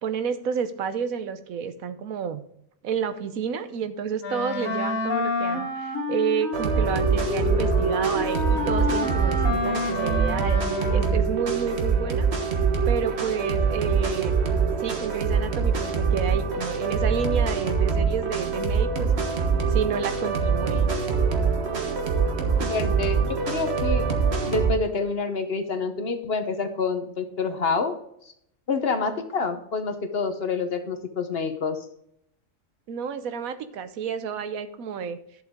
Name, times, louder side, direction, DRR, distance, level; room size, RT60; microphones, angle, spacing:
voice 1, 0.0-2.4 2.8-12.3 12.5-14.4 14.8-19.1 19.7-20.9 32.9-35.2, right 7 dB, 80° right, 11 dB, 1.2 m, -30 dB
Wind instrument woodwind instrument, 4.2-11.4, left 3 dB, 70° left, 2.3 m, -28 dB
sound 1, 6.5-24.7, right 5 dB, 50° right, 1.5 m, -24 dB
voice 2, 22.6-24.0 24.5-27.9 28.7-31.8, left 4 dB, 50° left, 7 dB, 1.1 m, -27 dB
11.5 x 7.5 x 3.6 m, 0.72 s
omnidirectional pair, 1.5 m